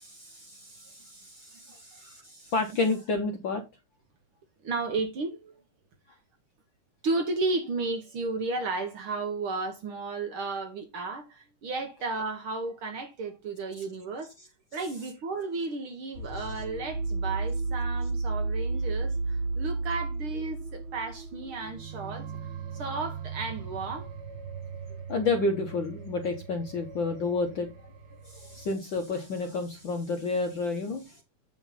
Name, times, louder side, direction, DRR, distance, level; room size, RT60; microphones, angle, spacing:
voice 1, 0.0-3.6 25.1-27.7 28.2-31.2, left 3 dB, 60° left, 1.3 m, -30 dB
voice 2, 1.5-2.1 4.6-5.6 7.0-14.3 14.7-22.3 22.7-24.1, right 3 dB, 60° right, 1.6 m, -33 dB
sound 1, 16.2-28.8, right 3 dB, 80° right, 3.5 m, -34 dB
8.3 x 6.2 x 4.1 m
omnidirectional pair, 3.3 m